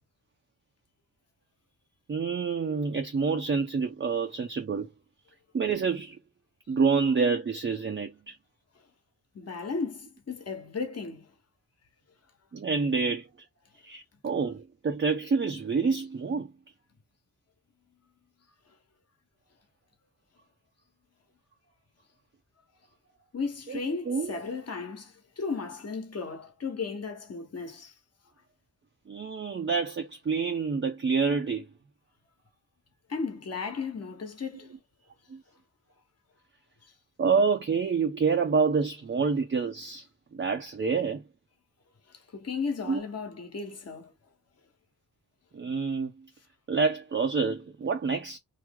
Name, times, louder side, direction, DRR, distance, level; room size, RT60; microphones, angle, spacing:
voice 1, 2.1-4.9 5.5-6.2 6.7-8.4 12.5-13.3 13.8-16.5 23.7-23.8 24.1-24.3 29.1-31.7 35.3-35.4 37.2-40.0 40.3-41.2 42.9-43.0 45.5-46.1 46.7-48.4, right 5 dB, 30° right, 0.6 m, -27 dB
voice 2, 9.3-11.3 23.3-27.9 33.1-34.8 42.3-44.1, left 4 dB, 40° left, 1.2 m, -35 dB
3.1 x 2.1 x 3.6 m
cardioid pair, 75°, 38 cm